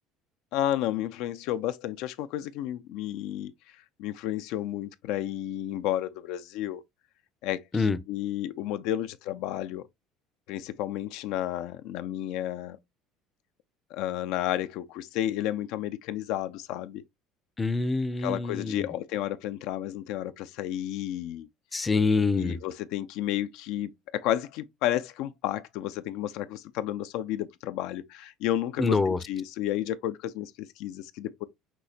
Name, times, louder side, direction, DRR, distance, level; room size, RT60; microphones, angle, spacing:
voice 1, 0.5-3.5 4.0-6.8 7.4-9.8 10.5-12.8 13.9-17.0 18.2-21.5 22.3-31.4, left 12 dB, 75° left, 0.4 m, -32 dB
voice 2, 17.6-18.9 21.7-22.6 28.8-29.2, left 4 dB, 15° left, 0.5 m, -25 dB
6.0 x 2.7 x 2.7 m
supercardioid pair, 115°, 0 cm